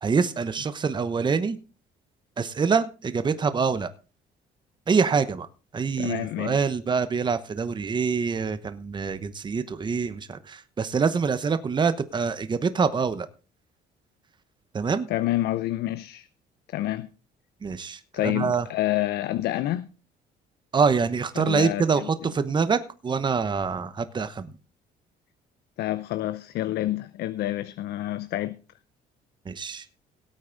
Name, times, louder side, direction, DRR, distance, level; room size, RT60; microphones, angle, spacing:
voice 1, 0.0-1.6 2.4-3.9 4.9-5.5 5.7-13.3 14.7-15.1 17.6-18.7 20.7-24.5 29.5-29.8, right 5 dB, 25° right, 1.0 m, -25 dB
voice 2, 6.0-6.6 15.1-16.3 16.7-17.1 18.1-19.9 21.4-22.1 25.8-28.6, left 15 dB, 75° left, 0.7 m, -28 dB
17.5 x 8.5 x 3.9 m
cardioid pair, 110°, 17 cm